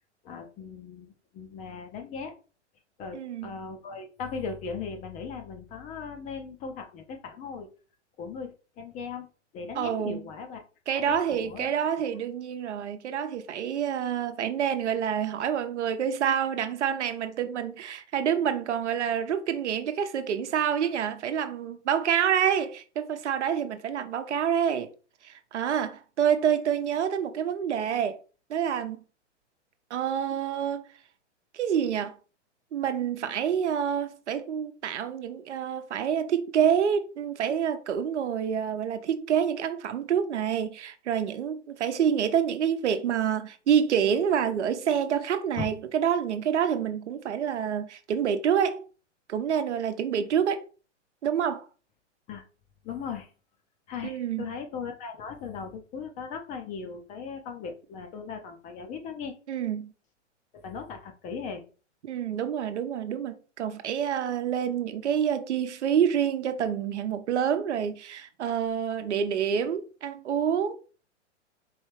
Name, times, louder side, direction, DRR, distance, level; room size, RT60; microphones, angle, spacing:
voice 1, 0.2-2.3 3.0-7.7 8.2-9.3 9.5-10.6 10.9-12.1 45.6-45.7 52.3-52.4 52.8-53.3 53.9-59.3 60.5-61.6, left 5 dB, 20° left, 0.5 m, -38 dB
voice 2, 3.1-3.5 9.8-10.2 10.9-24.9 25.2-28.2 28.5-29.0 29.9-30.8 31.5-32.2 32.7-48.8 49.3-50.7 51.2-51.6 54.0-54.5 59.5-59.9 62.0-70.8, right 8 dB, 70° right, 0.8 m, -27 dB
4.6 x 3.1 x 3.2 m
hypercardioid pair, 120°, 36 cm